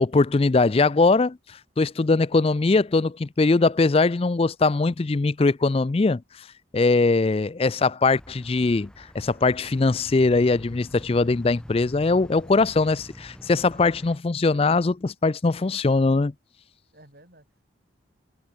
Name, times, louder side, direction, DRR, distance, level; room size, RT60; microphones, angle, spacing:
voice 1, 0.0-1.4 1.8-6.2 6.7-16.3, left 3 dB, 30° left, 0.4 m, -21 dB
sound 1, 8.1-14.2, equal, 5° left, 1.6 m, -45 dB
voice 2, 16.9-17.6, right 1 dB, 50° right, 7.1 m, -53 dB
head